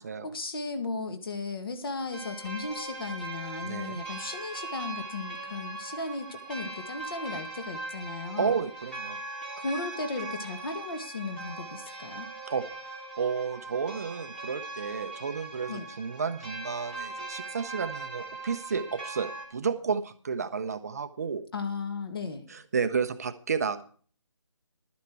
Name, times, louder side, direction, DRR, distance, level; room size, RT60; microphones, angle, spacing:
voice 1, 0.2-8.6 9.6-12.3 15.7-15.9 21.5-22.5, left 3 dB, 45° left, 7 dB, 1.9 m, -36 dB
sound 1, 2.1-19.5, right 3 dB, 5° left, 1.6 m, -40 dB
voice 2, 3.6-4.0 8.4-9.2 12.5-12.6 13.2-21.4 22.5-23.8, right 6 dB, 30° right, 9 dB, 0.7 m, -31 dB
12.0 x 10.0 x 4.7 m, 0.43 s
figure-of-eight pair, 165°, 16 cm